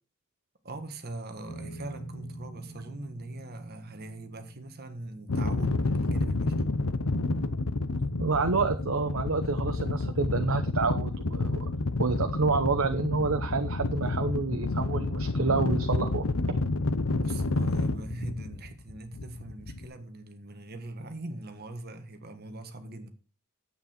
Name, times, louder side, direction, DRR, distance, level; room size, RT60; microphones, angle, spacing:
voice 1, 0.6-6.6 17.1-23.1, right 2 dB, 45° right, 1.5 m, -41 dB
sound 1, 1.5-8.0, right 2 dB, 65° left, 1.9 m, -48 dB
sound 2, 5.3-19.9, left 2 dB, 85° left, 0.9 m, -29 dB
voice 2, 8.2-11.6 12.0-16.2, right 4 dB, 70° right, 0.9 m, -28 dB
9.7 x 8.4 x 4.4 m
head